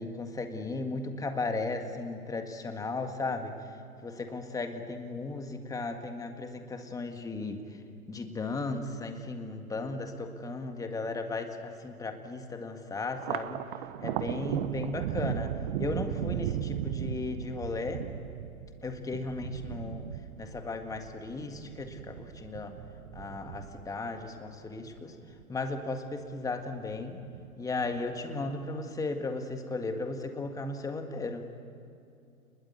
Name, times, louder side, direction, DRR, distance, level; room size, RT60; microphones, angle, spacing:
voice 1, 0.0-3.5 4.0-7.6 8.1-13.6 14.0-18.0 18.8-20.1 20.4-22.8 23.1-25.2 25.5-27.2 27.6-31.4, left 3 dB, 10° left, 6 dB, 1.9 m, -36 dB
Thunder, 13.1-25.8 26.2-27.0 27.3-28.2, right 10 dB, 40° right, 1.2 m, -37 dB
28.5 x 21.5 x 9.6 m, 2.6 s
hypercardioid pair, 130°, 43 cm